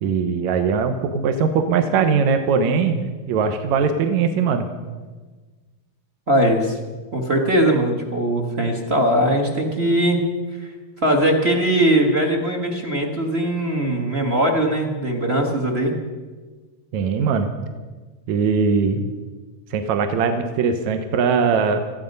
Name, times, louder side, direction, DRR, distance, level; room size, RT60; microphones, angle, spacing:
voice 1, 0.0-4.7 16.9-17.6 18.3-19.0 19.7-21.8, right 5 dB, 70° right, 7 dB, 2.2 m, -20 dB
voice 2, 6.3-6.8 7.1-10.2 10.5-10.7 11.0-15.9, right 1 dB, 35° right, 2 dB, 1.0 m, -20 dB
18.5 x 14.5 x 5.4 m, 1.3 s
omnidirectional pair, 3.8 m